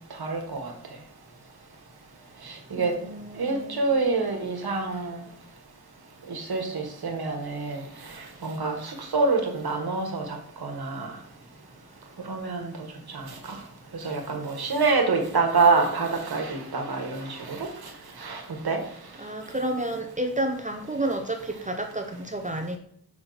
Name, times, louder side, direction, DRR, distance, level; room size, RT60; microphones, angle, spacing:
voice 1, 0.1-0.7 2.4-2.9 3.4-5.2 6.3-7.8 8.1-11.1 12.2-12.7 13.1-13.6 13.9-17.9 18.2-18.8, right 4 dB, 75° right, 3 dB, 1.5 m, -27 dB
voice 2, 2.8-3.9 19.2-22.8, right 1 dB, 20° right, 4 dB, 0.6 m, -30 dB
6.2 x 5.8 x 4.0 m, 0.64 s
wide cardioid pair, 130°, 37 cm